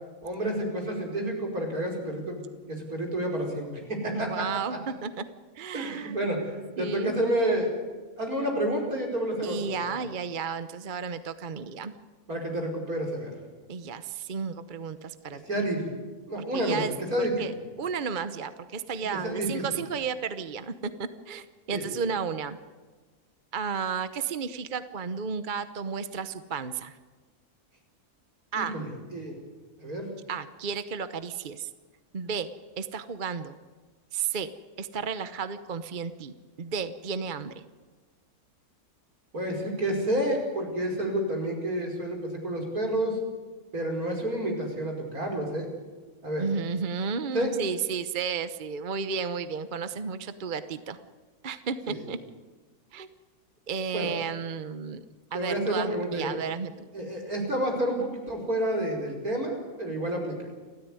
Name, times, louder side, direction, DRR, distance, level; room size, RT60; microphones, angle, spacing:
voice 1, 0.2-2.4 2.7-4.4 5.7-7.7 8.2-10.0 12.3-13.3 15.5-15.9 16.3-17.6 19.1-19.6 21.7-21.9 28.5-29.4 29.8-30.1 39.3-43.2 43.7-45.7 46.2-46.5 47.3-47.5 51.9-52.0 53.9-54.1 55.3-56.4 56.9-60.3, right 1 dB, 75° right, 1 dB, 5.4 m, -29 dB
voice 2, 4.1-5.2 5.5-6.2 6.8-7.2 9.4-11.9 13.7-15.4 16.5-16.9 17.2-22.6 23.5-27.0 28.5-28.8 30.3-31.7 32.1-32.5 32.8-33.5 34.1-34.5 34.8-37.6 46.4-51.0 51.4-52.2 52.9-53.1 53.7-55.0 55.3-56.7, right 6 dB, 40° right, 11 dB, 0.9 m, -33 dB
30.0 x 13.5 x 9.6 m, 1.3 s
omnidirectional pair, 1.6 m